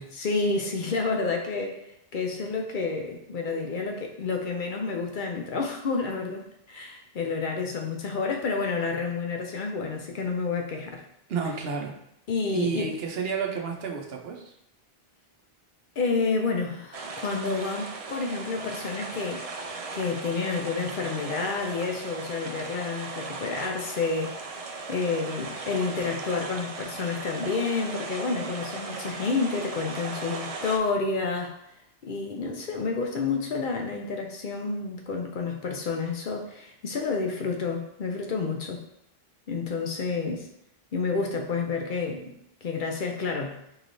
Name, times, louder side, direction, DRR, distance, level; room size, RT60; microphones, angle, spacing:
voice 1, 0.1-1.8 2.1-11.0 12.3-12.9 16.0-19.5 19.9-24.4 24.9-31.5 32.0-38.8 39.5-40.5 40.9-42.3 42.6-43.6, left 4 dB, 60° left, 2 dB, 0.7 m, -29 dB
voice 2, 11.3-11.9 12.5-14.5, right 5 dB, 75° right, 1 dB, 0.9 m, -30 dB
sound 1, 16.9-30.8, right 3 dB, 50° right, 0.4 m, -37 dB
4.7 x 3.2 x 2.6 m, 0.78 s
omnidirectional pair, 1.0 m